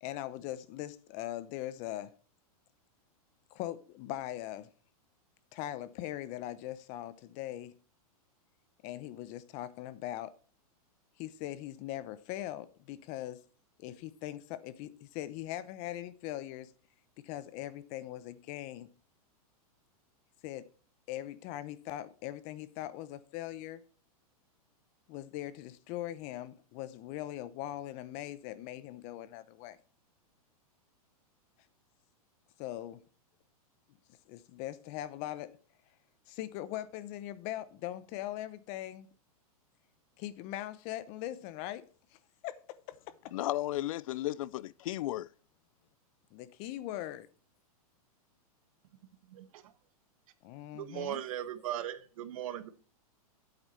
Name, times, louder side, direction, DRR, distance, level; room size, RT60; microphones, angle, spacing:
voice 1, 0.0-2.1 3.5-4.7 5.5-7.7 8.8-10.3 11.2-13.4 13.8-16.7 17.2-18.9 20.4-20.7 21.1-23.8 25.1-29.8 32.6-33.0 34.3-35.6 36.3-39.1 40.2-41.8 42.1-43.1 46.3-47.3 50.4-51.2, left 13 dB, 35° left, 0.8 m, -41 dB
voice 2, 43.3-45.3, left 15 dB, 60° left, 0.4 m, -34 dB
voice 3, 50.7-52.7, right 11 dB, 60° right, 1.3 m, -37 dB
9.0 x 7.9 x 4.2 m
hypercardioid pair, 145°, 19 cm